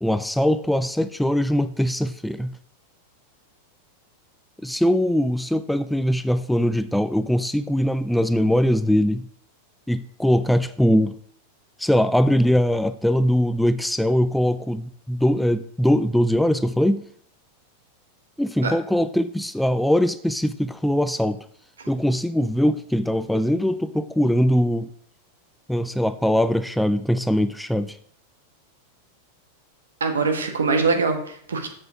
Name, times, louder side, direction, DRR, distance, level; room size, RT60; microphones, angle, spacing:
voice 1, 0.0-2.6 4.6-9.3 9.9-11.1 11.8-17.0 18.4-21.4 21.9-24.9 25.7-28.0, equal, ahead, 13 dB, 0.3 m, -21 dB
voice 2, 30.0-31.7, right 4 dB, 70° right, 5 dB, 1.3 m, -23 dB
7.6 x 6.2 x 4.7 m, 0.62 s
figure-of-eight pair, 90°, 0 cm